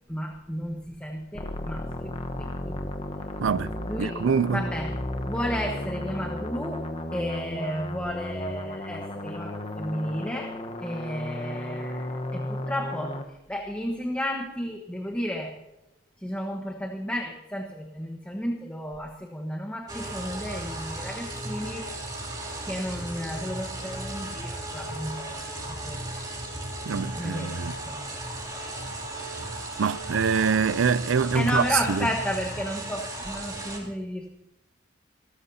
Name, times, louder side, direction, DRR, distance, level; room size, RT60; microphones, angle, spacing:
voice 1, 0.1-2.8 3.9-4.2 4.5-5.0 5.2-6.9 7.1-13.2 13.5-15.6 16.2-21.9 22.6-26.2 27.2-27.5 27.9-28.1 31.3-34.3, equal, 5° left, 1.2 m, -33 dB
sound 1, 1.3-13.2, left 1 dB, 30° left, 1.1 m, -34 dB
voice 2, 3.4-3.7 4.0-4.7 26.9-27.8 29.8-32.1, right 6 dB, 75° right, 0.5 m, -25 dB
sound 2, 19.9-33.8, right 1 dB, 20° right, 2.7 m, -36 dB
28.0 x 13.5 x 2.8 m
head